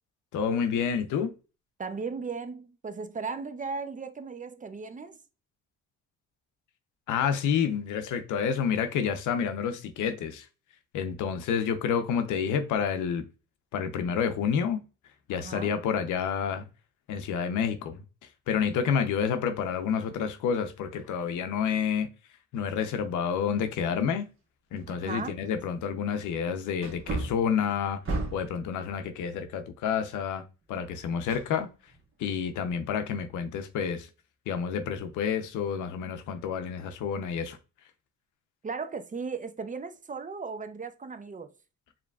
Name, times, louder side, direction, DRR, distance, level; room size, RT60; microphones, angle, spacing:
voice 1, 0.3-1.3 7.1-10.4 10.9-13.2 13.7-14.8 15.3-16.7 17.1-18.0 18.5-22.1 22.5-24.3 24.7-28.0 28.3-30.4 30.7-31.7 32.2-34.1 34.5-37.6, left 7 dB, 80° left, 0.7 m, -29 dB
voice 2, 1.8-5.2 15.3-15.8 24.9-25.3 38.6-41.5, right 4 dB, 25° right, 0.5 m, -36 dB
Wood, 24.8-24.9 25.4-25.5 26.8-28.6 31.3-32.0 32.4-32.5, right 2 dB, 45° right, 1.2 m, -34 dB
4.9 x 3.0 x 2.3 m
cardioid pair, 90°, 30 cm